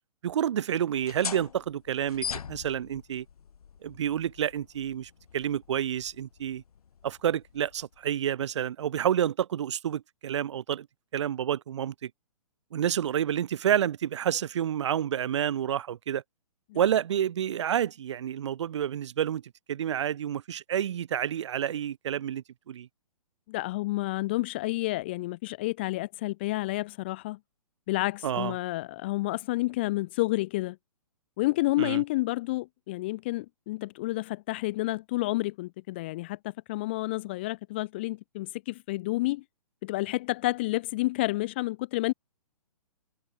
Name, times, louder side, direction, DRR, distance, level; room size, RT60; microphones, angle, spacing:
voice 1, 0.2-3.3 3.8-6.6 7.0-10.9 11.1-12.1 12.7-16.2 16.7-19.4 19.7-22.9 28.2-28.5 31.8-32.0, right 10 dB, 50° right, 1.8 m, -29 dB
sound 1, 0.9-8.2, left 7 dB, 75° left, 1.7 m, -42 dB
voice 2, 23.5-27.4 27.9-30.8 31.4-39.4 39.8-42.1, left 19 dB, 20° left, 0.5 m, -30 dB
hypercardioid pair, 165°, 19 cm